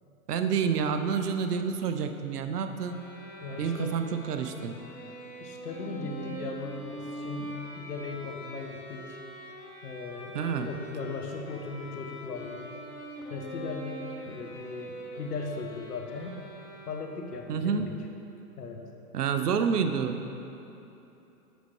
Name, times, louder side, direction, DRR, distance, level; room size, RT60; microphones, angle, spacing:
voice 1, 0.3-3.0 3.6-4.8 10.3-10.7 17.5-17.8 19.1-20.2, right 6 dB, 85° right, 8 dB, 0.7 m, -28 dB
Bowed string instrument, 2.7-17.4, equal, 25° left, 0.8 m, -43 dB
voice 2, 3.4-4.0 5.4-9.2 9.8-10.4 10.6-12.8 13.3-16.4 16.9-17.9 18.6-18.8, left 3 dB, 85° left, 3 dB, 1.0 m, -38 dB
8.0 x 6.4 x 3.2 m, 2.9 s
hypercardioid pair, 130°, 45 cm